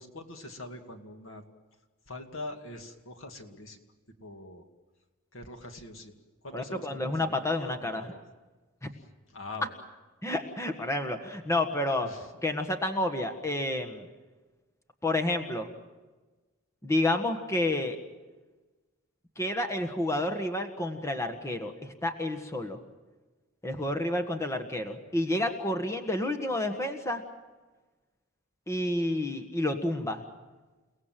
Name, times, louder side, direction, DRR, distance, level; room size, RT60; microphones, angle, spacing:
voice 1, 0.0-1.4 2.1-3.8 4.2-4.7 5.3-6.1 6.4-8.2 8.9-9.7 12.0-12.3 23.7-23.9, left 2 dB, 75° left, 5 dB, 2.4 m, -44 dB
voice 2, 6.5-8.0 10.2-12.1 12.4-14.1 15.0-15.7 16.8-18.0 19.4-22.8 23.6-27.2 28.7-30.2, left 1 dB, 15° left, 5 dB, 1.6 m, -30 dB
30.0 x 18.5 x 7.7 m, 1.2 s
head